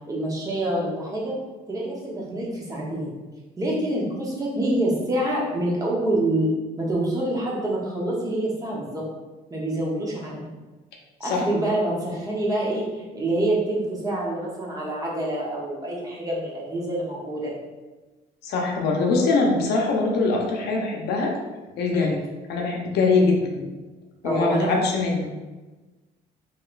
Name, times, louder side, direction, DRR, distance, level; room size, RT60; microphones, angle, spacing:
voice 1, 0.1-1.3 1.7-3.1 3.6-6.5 6.8-9.0 9.5-10.5 11.2-17.5 21.9-22.1 24.2-24.7, right 1 dB, 20° right, -4 dB, 0.8 m, -26 dB
voice 2, 18.4-21.3 21.8-22.2 22.5-23.6 24.2-25.3, left 3 dB, 75° left, 0 dB, 0.7 m, -22 dB
3.0 x 2.9 x 2.4 m, 1.2 s
cardioid pair, 110°, 17 cm